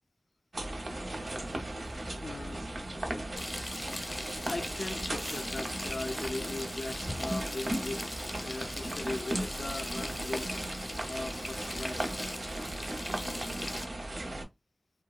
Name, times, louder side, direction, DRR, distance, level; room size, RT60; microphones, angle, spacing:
sound 1, 0.5-14.4, right 1 dB, 75° right, 0.7 m, -37 dB
sound 2, 1.1-7.8, right 1 dB, 40° right, 0.4 m, -49 dB
voice 1, 2.2-2.7 4.5-8.1 8.4-10.5 11.1-12.1, left 2 dB, 70° left, 0.3 m, -39 dB
Frying (food), 3.4-13.8, left 1 dB, 25° left, 0.6 m, -40 dB
2.8 x 2.2 x 2.3 m
wide cardioid pair, 65°, 0 cm